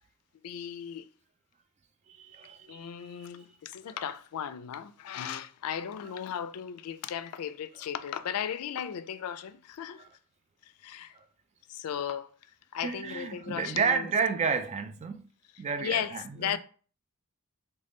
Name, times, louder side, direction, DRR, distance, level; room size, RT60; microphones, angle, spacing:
voice 1, 0.4-1.1 2.7-10.1 10.6-11.2 11.7-12.3 12.7-14.1 15.8-16.6, left 9 dB, 85° left, 0.4 m, -36 dB
voice 2, 2.1-3.3 10.0-10.1 11.1-11.2 12.8-15.3 15.6-16.6, right 5 dB, 30° right, 0.3 m, -31 dB
3.8 x 2.2 x 3.4 m
head